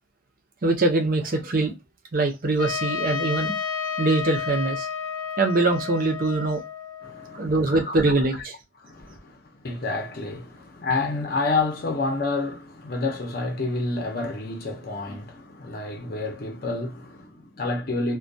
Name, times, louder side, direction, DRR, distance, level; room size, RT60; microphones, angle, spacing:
voice 1, 0.6-1.8 2.1-3.5 4.0-4.9 5.4-6.6 7.3-8.6, right 2 dB, 45° right, 0.5 m, -23 dB
Trumpet, 2.6-7.4, left 6 dB, 90° left, 0.6 m, -31 dB
voice 2, 7.0-8.1 8.8-18.2, left 3 dB, 50° left, 0.6 m, -29 dB
2.2 x 2.2 x 2.5 m
head